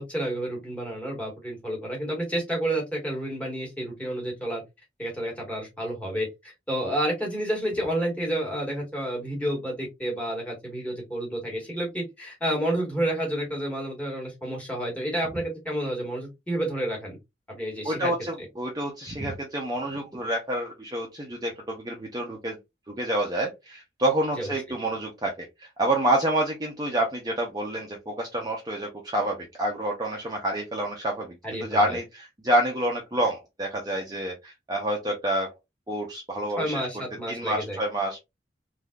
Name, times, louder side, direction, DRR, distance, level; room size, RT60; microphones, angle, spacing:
voice 1, 0.0-4.6 5.0-17.2 17.5-18.1 24.4-24.5 31.4-32.0 36.6-37.8, right 1 dB, 5° left, 0 dB, 1.4 m, -30 dB
voice 2, 17.8-22.6 23.0-25.5 25.8-31.3 31.6-35.5 35.9-36.8 37.3-38.2, right 1 dB, 20° right, 0 dB, 0.6 m, -28 dB
3.6 x 2.7 x 2.3 m, 0.21 s
head